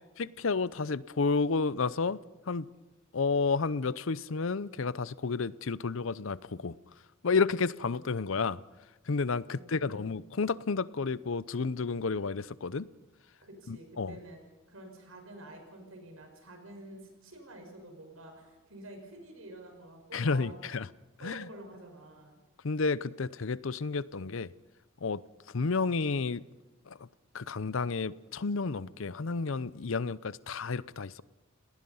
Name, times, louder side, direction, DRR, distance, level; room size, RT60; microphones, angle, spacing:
voice 1, 0.2-2.2 2.5-2.7 3.1-6.7 7.2-8.6 9.1-12.9 13.7-14.2 20.1-20.9 21.2-21.5 22.6-24.5 25.0-25.2 25.5-26.4 26.9-27.1 27.3-31.2, left 4 dB, 65° left, 18 dB, 0.6 m, -31 dB
voice 2, 9.5-10.2 13.4-14.4 14.7-20.6 21.2-22.4, right 1 dB, 75° right, 4 dB, 5.7 m, -49 dB
29.5 x 19.0 x 5.6 m, 1.1 s
head